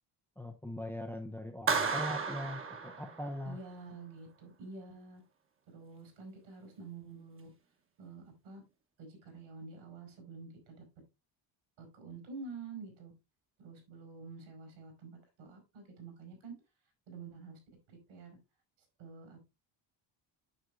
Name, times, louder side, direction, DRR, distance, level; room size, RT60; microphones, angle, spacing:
voice 1, 0.4-3.6, left 1 dB, 5° left, 0.4 m, -41 dB
Clapping, 1.7-3.5, right 5 dB, 30° right, 1.0 m, -33 dB
voice 2, 3.4-5.2 5.7-7.5 8.0-8.6 9.0-10.8 11.8-13.1 13.6-16.5 17.1-17.6 17.9-18.4 19.0-19.5, right 4 dB, 80° right, 4.5 m, -48 dB
9.1 x 7.0 x 2.5 m
cardioid pair, 170°, 46 cm